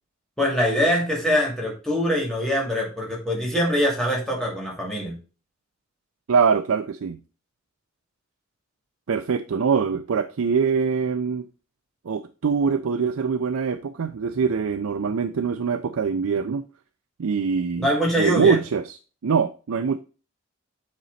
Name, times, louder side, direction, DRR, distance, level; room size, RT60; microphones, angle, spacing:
voice 1, 0.4-5.2 17.8-18.6, equal, ahead, 2.7 m, -23 dB
voice 2, 6.3-7.2 9.1-11.4 12.0-16.6 17.2-17.9 18.2-19.0 19.2-20.0, right 6 dB, 85° right, 0.5 m, -23 dB
8.8 x 4.0 x 4.2 m
head